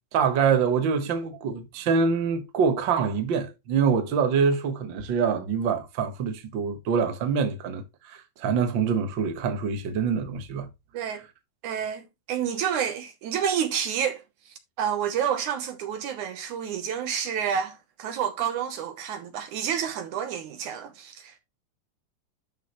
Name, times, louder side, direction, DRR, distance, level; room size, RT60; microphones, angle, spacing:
voice 1, 0.1-10.7, right 6 dB, 55° right, 1.3 m, -25 dB
voice 2, 11.6-14.2 14.8-21.4, right 8 dB, 70° right, 2.1 m, -29 dB
12.0 x 5.5 x 3.1 m
omnidirectional pair, 4.1 m